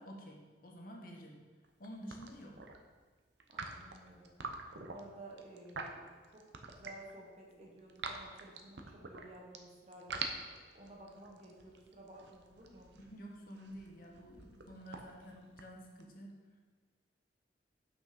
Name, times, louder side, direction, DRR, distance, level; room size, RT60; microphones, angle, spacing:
voice 1, 0.0-1.4 1.8-2.6 13.0-16.4, equal, 50° left, 0 dB, 1.2 m, -50 dB
sound 1, 1.6-2.8 3.4-7.1 7.5-9.6 9.9-16.0, right 4 dB, 75° right, 0.7 m, -45 dB
voice 2, 3.5-4.3 4.8-6.4 6.7-10.2 10.7-12.9, right 1 dB, 35° right, -1 dB, 1.3 m, -54 dB
6.0 x 5.9 x 5.1 m, 1.4 s
head